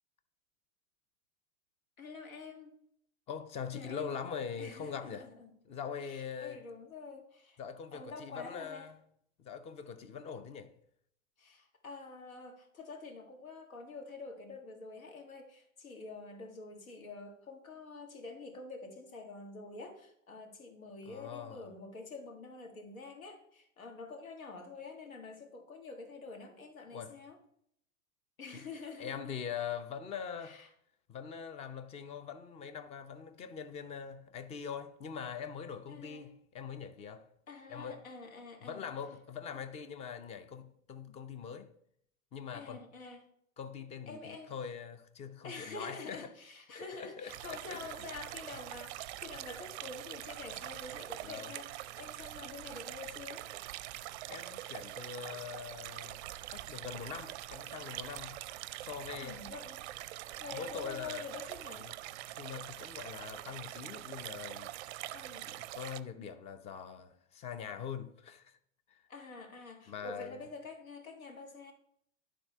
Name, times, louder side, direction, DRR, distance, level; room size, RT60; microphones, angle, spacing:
voice 1, 2.0-2.7 3.7-4.2 4.6-7.6 7.9-8.9 11.4-27.4 28.4-29.4 30.4-30.7 35.9-36.3 37.5-38.9 39.5-39.6 42.5-43.3 44.1-44.5 45.4-53.5 59.2-59.9 60.4-61.9 65.1-65.5 69.1-71.7, left 3 dB, 90° left, 1.8 m, -47 dB
voice 2, 3.3-5.3 5.7-6.6 7.6-8.9 9.4-10.7 21.1-21.6 26.9-27.1 28.5-28.6 29.0-30.6 31.1-37.3 37.7-38.0 38.6-41.7 42.3-42.8 43.6-46.3 46.7-47.9 51.2-51.5 54.3-56.2 56.5-58.4 58.8-59.4 60.5-61.3 61.8-61.9 62.4-64.7 65.4-68.6 68.9-69.0 69.9-70.4, left 7 dB, 15° left, 0.5 m, -43 dB
sound 1, 47.3-66.0, right 15 dB, 55° right, 0.5 m, -44 dB
11.0 x 3.7 x 4.5 m
hypercardioid pair, 115°, 40 cm